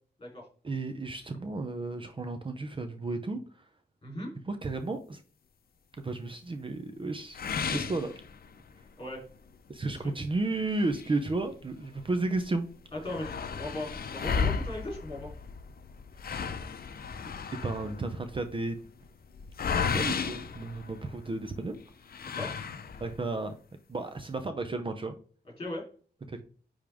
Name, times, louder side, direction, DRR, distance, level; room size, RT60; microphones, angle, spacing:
voice 1, 0.6-3.4 4.5-5.2 6.0-8.1 9.7-12.7 16.8-17.0 17.5-18.8 19.8-21.8 23.0-23.5 23.9-25.2 26.3-26.4, right 2 dB, 30° right, 0.6 m, -33 dB
voice 2, 4.0-4.3 9.0-9.2 9.9-10.2 12.9-15.3 22.3-22.6 25.6-25.8, left 1 dB, 30° left, 3.4 m, -38 dB
sound 1, 7.3-8.8 9.2-9.3 9.8-9.9 10.7-12.0 12.3-12.4 12.7-21.4 22.1-23.2, left 6 dB, 60° left, 0.6 m, -34 dB
9.9 x 3.6 x 3.5 m
wide cardioid pair, 160°, 18 cm